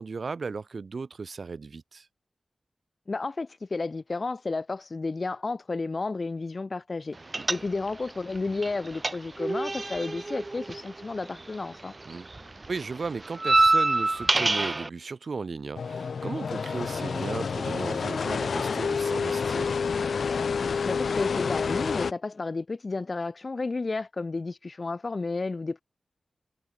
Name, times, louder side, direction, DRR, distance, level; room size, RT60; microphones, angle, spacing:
voice 1, 0.0-2.1 12.0-12.3 12.7-19.7, right 4 dB, 65° right, 3.3 m, -36 dB
voice 2, 3.1-7.2 7.5-11.9 20.8-25.8, left 3 dB, 50° left, 1.5 m, -32 dB
sound 1, 7.3-8.1 8.4-11.8 12.0-14.9, right 2 dB, 40° right, 0.5 m, -26 dB
sound 2, 15.8-22.1, left 5 dB, 80° left, 0.9 m, -29 dB
cardioid pair, 45°, 0 cm